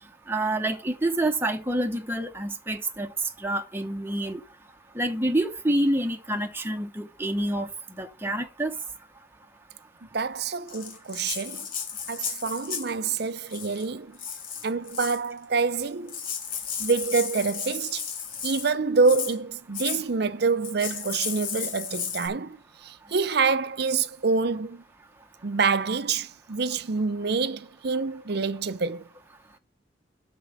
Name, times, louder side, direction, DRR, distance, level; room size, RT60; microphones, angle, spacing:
voice 1, 0.3-3.1 3.4-4.4 5.0-7.7 8.0-8.7, right 1 dB, 10° right, 0.9 m, -27 dB
voice 2, 10.1-11.7 12.1-14.2 14.6-16.2 16.8-18.0 18.4-22.6 22.8-24.8 25.4-29.0, right 4 dB, 55° right, 0.6 m, -26 dB
Rattle (instrument), 10.7-13.0 13.5-13.8 14.2-15.3 15.8-15.9 16.1-18.7 19.0-19.3 19.7-20.0 20.6-22.3, left 7 dB, 45° left, 2.8 m, -34 dB
12.0 x 4.5 x 7.1 m
head